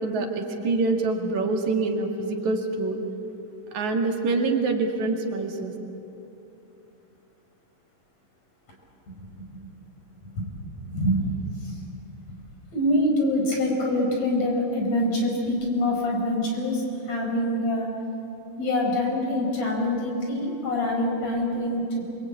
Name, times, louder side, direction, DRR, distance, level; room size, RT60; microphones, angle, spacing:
voice 1, 0.0-3.0 3.7-5.7, right 3 dB, 65° right, 2 dB, 3.3 m, -25 dB
voice 2, 10.8-11.3 11.6-11.7 12.7-17.9 18.6-22.0, left 1 dB, 55° left, 0 dB, 6.0 m, -25 dB
27.0 x 23.5 x 8.6 m, 2.8 s
omnidirectional pair, 3.7 m